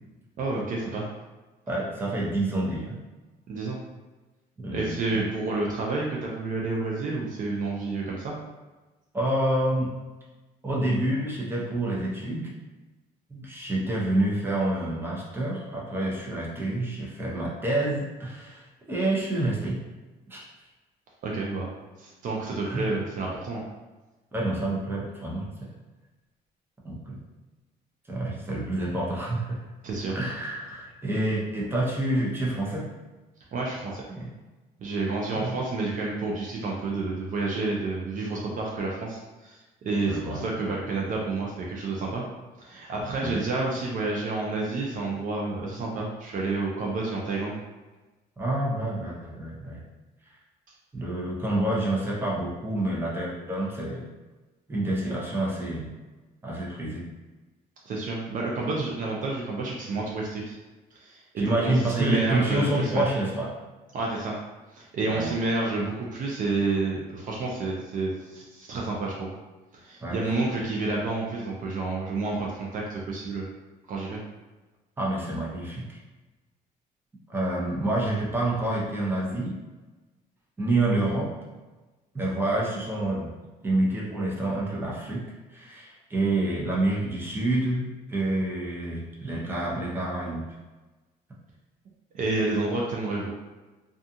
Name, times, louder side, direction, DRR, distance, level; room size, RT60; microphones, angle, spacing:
voice 1, 0.4-1.1 3.5-3.8 4.7-8.3 21.2-21.7 22.0-23.6 29.8-30.2 33.5-34.0 34.8-42.2 42.6-47.6 57.8-60.6 60.9-63.0 63.9-64.4 64.7-69.3 69.7-73.4 73.9-74.2 92.1-93.3, right 3 dB, 50° right, -2 dB, 0.5 m, -29 dB
voice 2, 1.7-2.9 4.6-5.3 9.1-9.9 10.6-12.5 13.3-18.6 18.9-19.8 20.3-20.4 22.7-22.9 24.3-25.5 26.8-27.2 28.1-29.6 30.1-32.9 34.1-34.3 35.3-35.5 40.0-40.4 43.2-43.4 48.4-49.8 50.9-54.0 54.7-55.9 56.4-57.0 61.4-63.5 65.1-65.3 70.0-70.2 75.0-75.8 77.3-79.6 80.6-81.3 82.1-83.3 83.6-85.2 85.5-90.4, right 1 dB, 15° right, -4 dB, 0.7 m, -28 dB
2.4 x 2.4 x 2.7 m, 1.2 s
cardioid pair, 110°, 17 cm